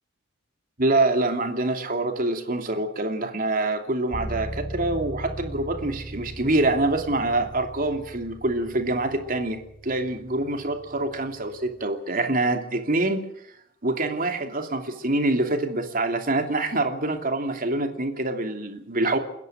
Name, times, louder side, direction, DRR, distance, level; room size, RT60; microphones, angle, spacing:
voice 1, 0.8-13.3 13.8-19.2, right 2 dB, 45° right, 2.8 m, -25 dB
sound 1, 4.1-11.9, right 1 dB, 25° left, 4.5 m, -39 dB
29.5 x 10.5 x 8.8 m
head